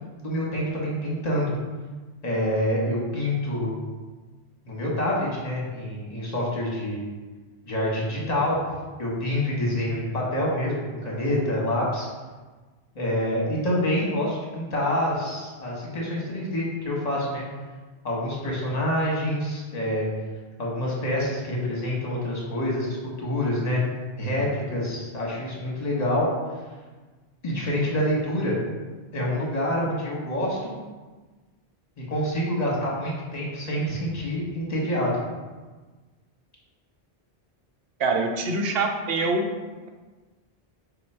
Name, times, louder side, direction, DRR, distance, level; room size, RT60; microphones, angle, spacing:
voice 1, 0.2-1.5 2.2-3.7 4.6-7.0 7.6-8.6 9.0-12.1 12.9-17.4 18.0-20.1 20.6-23.8 24.2-26.3 27.4-28.6 29.1-30.7 32.1-35.1, left 1 dB, 40° left, -3 dB, 1.1 m, -27 dB
voice 2, 38.0-39.5, right 3 dB, 70° right, 3 dB, 0.8 m, -24 dB
4.4 x 2.3 x 4.3 m, 1.3 s
omnidirectional pair, 1.1 m